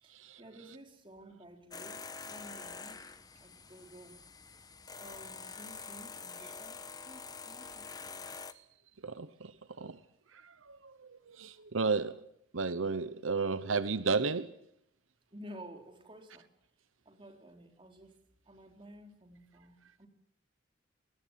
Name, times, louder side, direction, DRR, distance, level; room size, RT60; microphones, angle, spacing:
voice 1, 0.0-3.1 3.4-4.2 5.0-6.8 7.1-8.1 15.3-16.5 17.1-18.2 18.5-20.1, right 1 dB, 25° right, 3.9 m, -52 dB
sound 1, 1.7-8.5, left 5 dB, 20° left, 1.1 m, -46 dB
voice 2, 9.0-9.5 9.8-10.0 10.4-12.3 12.5-14.5, right 4 dB, 85° right, 1.0 m, -33 dB
20.5 x 19.5 x 9.5 m
head